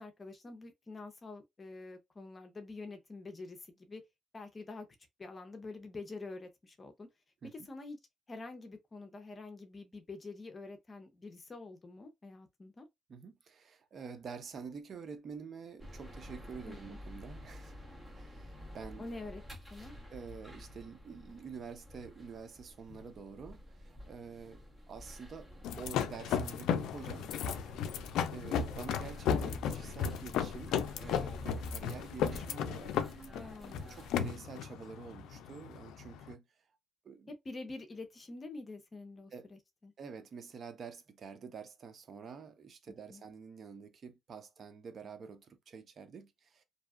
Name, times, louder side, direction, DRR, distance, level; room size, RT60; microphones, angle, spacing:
voice 1, 0.0-4.0 4.3-4.9 5.2-7.1 7.5-8.0 8.3-12.9 16.7-17.0 19.0-19.4 19.7-19.9 33.3-33.8 37.3-39.9 42.9-43.2, left 3 dB, 30° left, 0.7 m, -46 dB
voice 2, 13.1-17.8 18.1-19.1 20.1-24.6 24.9-25.5 25.8-27.7 28.3-33.0 33.9-36.4 37.0-37.3 39.3-39.5 40.0-46.6, right 5 dB, 50° right, 0.5 m, -48 dB
sound 1, 15.8-34.3, equal, 20° right, 1.0 m, -51 dB
sound 2, 25.6-36.3, left 8 dB, 90° left, 0.3 m, -35 dB
2.7 x 2.2 x 2.4 m
cardioid pair, 90°, 0 cm